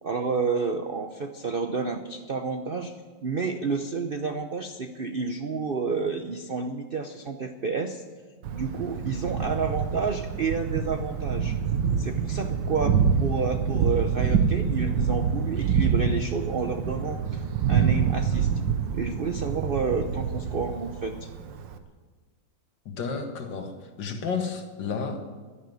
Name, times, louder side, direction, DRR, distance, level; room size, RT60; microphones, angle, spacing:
voice 1, 0.0-2.9 3.2-8.0 8.5-11.6 12.0-17.4 17.7-18.5 18.9-21.3, right 4 dB, 90° right, 6 dB, 0.4 m, -30 dB
Thunder, 8.4-21.8, right 7 dB, 70° right, 1.6 m, -26 dB
voice 2, 22.9-23.7 24.0-25.3, left 5 dB, 70° left, 5 dB, 2.2 m, -31 dB
12.0 x 11.0 x 9.2 m, 1.4 s
omnidirectional pair, 2.1 m